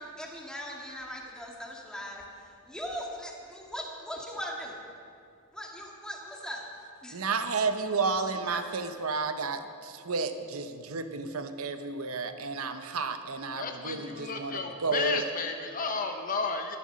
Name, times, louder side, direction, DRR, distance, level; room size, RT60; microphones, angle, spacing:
voice 1, 0.0-4.8 5.5-6.7 7.0-7.3 8.4-8.6, equal, 5° left, -1 dB, 1.8 m, -40 dB
voice 2, 7.1-15.2, right 4 dB, 70° right, 8 dB, 0.9 m, -32 dB
voice 3, 13.5-16.8, left 4 dB, 40° left, 5 dB, 0.8 m, -32 dB
13.5 x 11.0 x 6.3 m, 2.4 s
head